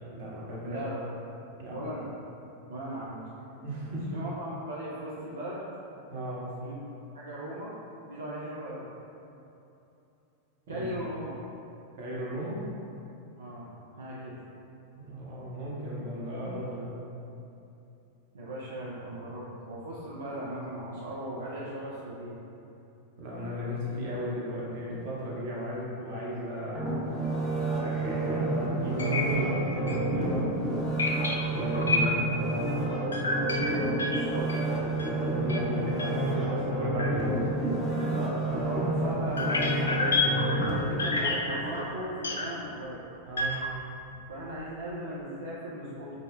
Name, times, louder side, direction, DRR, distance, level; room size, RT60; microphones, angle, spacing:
voice 1, 0.1-0.8 1.6-1.8 3.6-4.1 6.1-6.4 10.7-10.8 12.0-12.6 15.0-16.9 23.2-27.1 27.8-30.6 31.5-33.0 35.2-38.1 43.3-43.6, equal, 50° right, -5 dB, 0.8 m, -35 dB
voice 2, 0.7-1.0 1.7-2.1 2.7-3.2 4.1-5.6 6.6-6.7 7.1-7.7 8.1-8.8 10.7-11.5 13.4-14.3 18.3-22.4 33.8-35.3 35.6-35.9 36.5-36.8 38.1-39.8 40.6-43.0 44.3-46.1, right 1 dB, 70° right, -7 dB, 0.4 m, -38 dB
sound 1, 26.7-41.8 42.2-42.3, right 1 dB, 10° left, 0.7 m, -29 dB
sound 2, 28.4-28.5 29.0-29.2 29.5-29.6 29.9-30.0 31.0-32.3 33.1-35.2 35.5-35.7 35.9-36.1 36.4-36.6 37.0-37.1 38.0-38.1 39.3-42.5 43.3-43.9 44.3-44.6, left 3 dB, 70° left, 0.3 m, -30 dB
5.0 x 2.1 x 2.3 m, 2.8 s
figure-of-eight pair, 90°, 0 cm